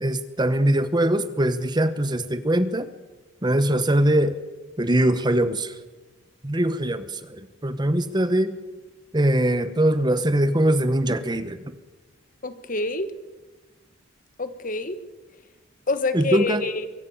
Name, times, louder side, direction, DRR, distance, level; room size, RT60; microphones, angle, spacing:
voice 1, 0.0-2.9 3.4-4.4 4.8-5.8 6.4-8.5 9.1-11.7 16.1-16.6, right 1 dB, 20° right, 12 dB, 1.0 m, -22 dB
voice 2, 12.4-13.1 14.4-15.0 15.9-16.9, left 3 dB, 45° left, 11 dB, 1.3 m, -27 dB
24.0 x 16.0 x 7.3 m, 1.2 s
head